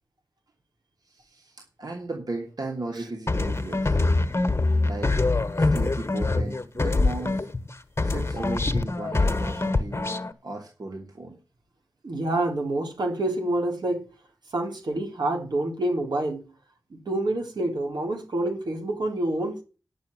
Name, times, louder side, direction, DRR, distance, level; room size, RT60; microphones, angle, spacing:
voice 1, 1.1-4.0 4.8-5.2 5.6-7.4 8.0-11.4, right 2 dB, 65° right, 1 dB, 2.7 m, -36 dB
sound 1, 3.3-7.7 8.0-10.3, left 3 dB, 35° left, 1.4 m, -24 dB
voice 2, 12.0-14.1 14.5-16.5 16.9-19.6, right 1 dB, 80° right, 2 dB, 3.6 m, -27 dB
10.0 x 6.4 x 7.9 m, 0.33 s
wide cardioid pair, 55°, 7 cm